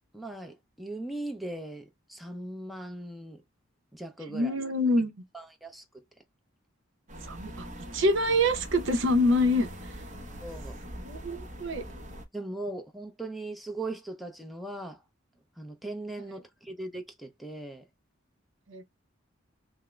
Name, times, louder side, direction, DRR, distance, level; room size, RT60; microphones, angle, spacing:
voice 1, 0.1-3.4 3.9-4.6 5.3-6.0 10.4-10.8 12.3-15.0 15.6-17.9, right 2 dB, ahead, 0.5 m, -39 dB
voice 2, 4.3-5.1 7.2-7.6 7.9-9.7 11.0-11.8 18.7-18.8, left 1 dB, 70° right, 0.7 m, -25 dB
sound 1, 7.1-12.3, equal, 40° right, 0.8 m, -42 dB
3.6 x 2.0 x 3.1 m
head